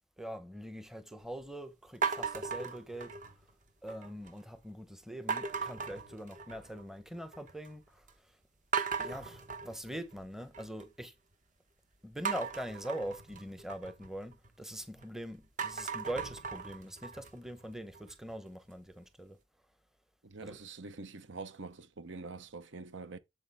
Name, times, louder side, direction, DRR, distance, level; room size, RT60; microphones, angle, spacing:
voice 1, 0.2-3.2 3.8-8.4 9.0-11.1 12.0-19.4 20.4-20.6, equal, ahead, 0.9 m, -43 dB
sound 1, 2.0-3.5 3.9-4.4 5.3-6.8 7.1-7.7 8.1-8.2 8.7-10.8 12.2-15.0 15.4-18.3, right 5 dB, 40° right, 1.1 m, -38 dB
voice 2, 20.2-23.2, right 3 dB, 60° right, 0.8 m, -45 dB
8.3 x 7.2 x 3.5 m
head